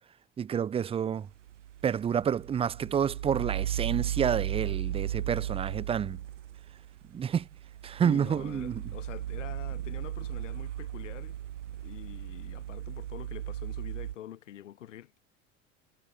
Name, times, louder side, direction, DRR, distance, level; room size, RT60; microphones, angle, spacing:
voice 1, 0.4-1.3 1.8-6.2 7.1-7.4 7.8-8.7, right 8 dB, 15° right, 0.4 m, -29 dB
sound 1, 1.2-14.1, right 12 dB, 70° right, 5.7 m, -36 dB
voice 2, 8.0-11.4 11.8-15.1, left 12 dB, 70° left, 7.5 m, -45 dB
figure-of-eight pair, 65°, 38 cm